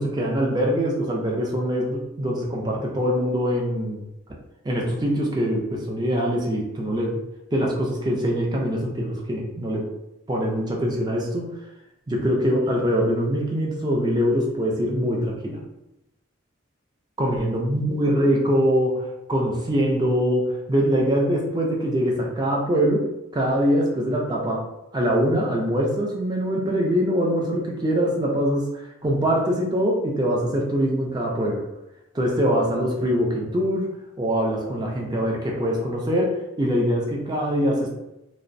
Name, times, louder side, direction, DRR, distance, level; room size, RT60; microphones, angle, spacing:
voice 1, 0.0-4.0 4.6-7.2 7.5-9.9 10.3-11.5 12.1-15.6 17.2-23.1 23.3-24.7 24.9-31.6 32.1-33.9 34.2-37.9, equal, 20° right, -1 dB, 0.3 m, -23 dB
2.5 x 2.0 x 2.5 m, 0.92 s
head